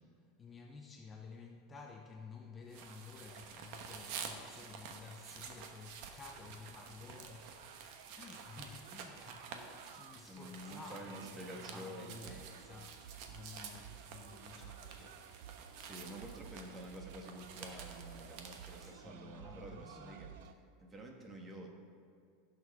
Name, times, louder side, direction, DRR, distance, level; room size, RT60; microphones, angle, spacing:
voice 1, 0.4-15.9 18.8-20.2, left 4 dB, 20° left, 2 dB, 0.7 m, -53 dB
sound 1, 2.7-18.9, right 6 dB, 55° right, 1.1 m, -50 dB
sound 2, 6.2-20.5, right 9 dB, 75° right, 0.5 m, -55 dB
voice 2, 10.3-12.4 15.8-20.3 20.8-21.7, right 1 dB, 20° right, 1 dB, 1.4 m, -49 dB
15.5 x 6.6 x 3.6 m, 2.4 s
supercardioid pair, 140°, 0 cm